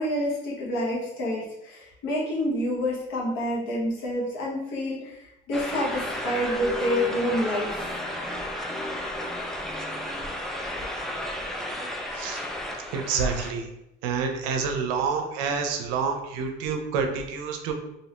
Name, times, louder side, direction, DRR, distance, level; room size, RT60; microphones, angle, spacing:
voice 1, 0.0-7.9, equal, 75° left, -5 dB, 1.1 m, -28 dB
sound 1, 5.5-13.5, left 1 dB, ahead, 0.3 m, -33 dB
voice 2, 12.9-13.7 14.0-17.7, right 5 dB, 90° right, 4 dB, 0.5 m, -28 dB
2.7 x 2.0 x 2.9 m, 0.86 s
supercardioid pair, 95°, 20 cm